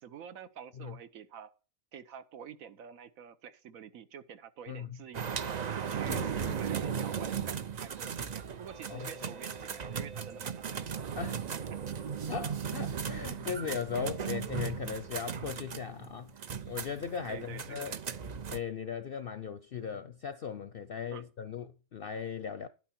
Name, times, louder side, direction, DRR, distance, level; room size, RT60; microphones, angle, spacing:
voice 1, 0.0-1.5 1.9-5.4 5.9-10.9 14.9-15.0 17.3-18.2 21.1-21.2, right 8 dB, 75° right, 1.3 m, -48 dB
sound 1, 5.1-18.6, right 7 dB, 50° right, 0.5 m, -37 dB
voice 2, 6.1-6.8 8.9-9.1 11.1-11.5 12.3-16.3 16.6-18.0 18.5-22.7, left 7 dB, 55° left, 0.7 m, -38 dB
11.5 x 9.4 x 4.4 m
omnidirectional pair, 1.5 m